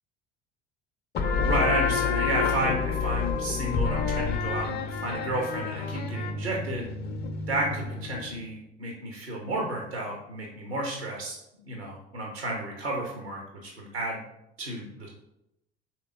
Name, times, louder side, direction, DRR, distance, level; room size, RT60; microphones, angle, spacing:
sound 1, 1.1-8.4, left 5 dB, 30° left, 0.5 m, -29 dB
voice 1, 1.4-6.9 7.5-11.4 11.6-14.2 14.6-15.1, right 1 dB, 90° right, 0 dB, 0.7 m, -32 dB
4.6 x 3.3 x 3.5 m, 0.86 s
figure-of-eight pair, 60°, 30 cm